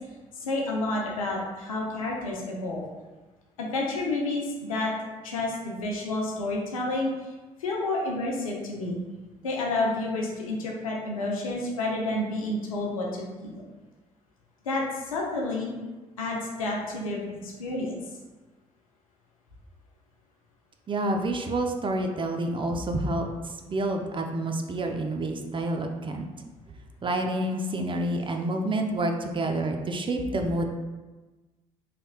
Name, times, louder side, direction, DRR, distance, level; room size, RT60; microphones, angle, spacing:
voice 1, 0.3-2.8 3.6-4.9 5.2-7.3 7.6-9.0 9.4-13.6 14.6-15.7 16.2-18.0, left 2 dB, 85° left, -1 dB, 0.6 m, -30 dB
voice 2, 20.9-23.3 23.7-26.3 27.0-30.7, right 1 dB, 30° right, 3 dB, 0.5 m, -28 dB
4.1 x 3.3 x 2.3 m, 1.2 s
hypercardioid pair, 50°, 17 cm